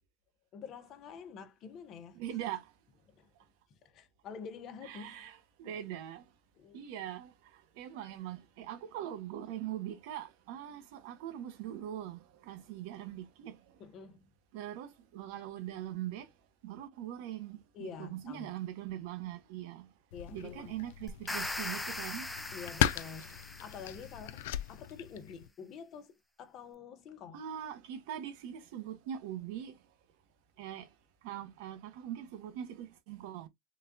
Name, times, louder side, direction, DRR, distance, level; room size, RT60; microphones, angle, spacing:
voice 1, 0.5-2.2 3.1-3.3 3.7-5.2 5.6-5.8 6.6-6.8 13.8-14.3 17.7-18.5 20.1-20.8 22.5-27.4, left 6 dB, 45° left, 0.7 m, -48 dB
voice 2, 2.1-2.7 4.8-6.3 6.7-13.8 14.5-16.3 16.6-19.9 20.3-22.3 27.3-29.8 30.6-30.9 31.2-33.5, right 11 dB, 80° right, 0.8 m, -42 dB
sound 1, 20.1-25.5, left 12 dB, 90° left, 0.3 m, -37 dB
sound 2, 21.1-24.3, left 2 dB, 10° left, 0.5 m, -40 dB
3.9 x 2.2 x 2.6 m
supercardioid pair, 135°, 0 cm